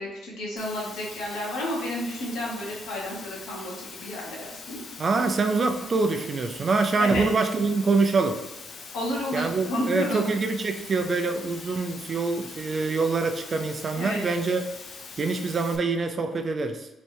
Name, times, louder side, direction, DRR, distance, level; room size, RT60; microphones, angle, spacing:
voice 1, 0.0-4.8 7.0-7.3 8.9-10.2 14.0-14.2, left 1 dB, 80° left, -3 dB, 1.3 m, -31 dB
Water, 0.6-15.8, left 4 dB, 55° left, 0.6 m, -43 dB
voice 2, 5.0-8.4 9.3-14.6 15.2-16.9, right 4 dB, 40° right, 6 dB, 0.5 m, -25 dB
3.2 x 2.7 x 4.6 m, 1.0 s
cardioid pair, 90°, 0 cm